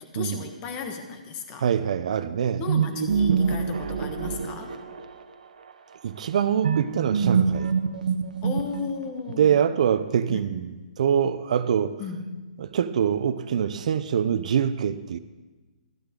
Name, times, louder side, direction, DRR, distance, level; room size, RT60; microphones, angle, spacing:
voice 1, 0.0-1.7 2.6-4.7 8.4-9.6 10.3-10.6 12.0-12.4, left 5 dB, 25° left, 5 dB, 1.2 m, -35 dB
voice 2, 1.6-2.6 6.0-7.7 9.4-11.9 12.6-15.2, right 8 dB, 60° right, 13 dB, 0.5 m, -24 dB
sound 1, 2.7-5.2 6.6-9.1, right 6 dB, 75° right, 0.9 m, -25 dB
13.0 x 10.5 x 3.8 m, 1.2 s
hypercardioid pair, 155°, 4 cm